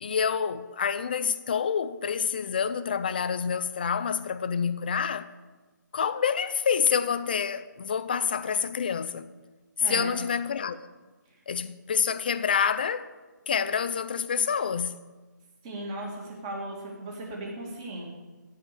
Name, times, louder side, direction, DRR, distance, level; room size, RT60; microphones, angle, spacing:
voice 1, 0.0-5.3 5.9-9.3 9.9-10.8 11.5-13.1 13.5-15.0, left 7 dB, 30° left, 0.4 m, -27 dB
voice 2, 9.8-10.2 15.6-18.1, right 1 dB, 20° right, 2.2 m, -36 dB
14.0 x 4.8 x 8.2 m
hypercardioid pair, 170°, 10 cm